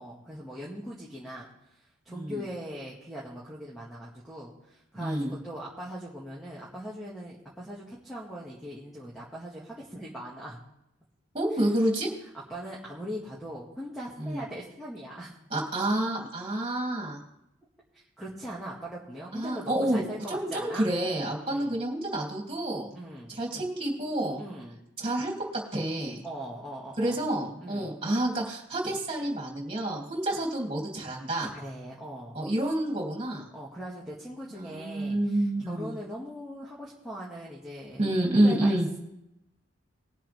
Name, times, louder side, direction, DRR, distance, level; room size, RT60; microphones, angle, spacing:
voice 1, 0.0-1.5 2.0-10.6 12.5-15.3 18.2-20.9 21.4-21.7 22.9-23.4 24.4-24.8 26.2-27.2 27.6-27.9 31.5-32.4 33.5-38.0 38.4-39.0, equal, ahead, -8 dB, 2.0 m, -40 dB
voice 2, 2.1-2.4 4.9-5.3 11.3-12.1 14.2-14.4 15.5-17.2 19.3-23.0 23.3-24.4 25.0-25.3 25.7-26.2 27.0-31.5 32.3-33.4 34.5-35.9 38.0-38.9, right 1 dB, 30° right, -1 dB, 3.1 m, -28 dB
20.0 x 7.5 x 3.5 m, 0.83 s
head